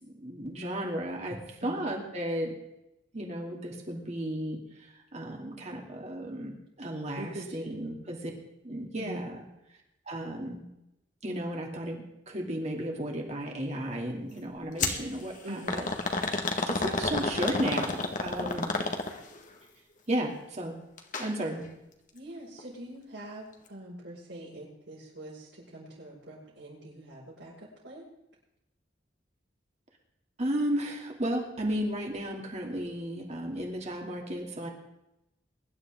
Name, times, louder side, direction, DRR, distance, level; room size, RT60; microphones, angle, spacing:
voice 1, 0.0-2.5 3.1-4.6 5.1-8.3 8.6-9.4 10.1-10.6 11.2-15.9 16.7-18.7 20.1-20.7 21.2-21.6 30.4-34.7, right 1 dB, 40° right, 1 dB, 2.8 m, -34 dB
voice 2, 7.1-7.8 9.0-9.3 15.4-15.8 18.4-18.9 22.1-28.1, right 1 dB, 85° right, -9 dB, 6.0 m, -44 dB
sound 1, 14.8-15.0 15.7-19.4 21.0-21.3 21.6-21.7 22.6-22.7, left 3 dB, 45° left, 1.6 m, -30 dB
23.0 x 11.5 x 3.8 m, 0.87 s
head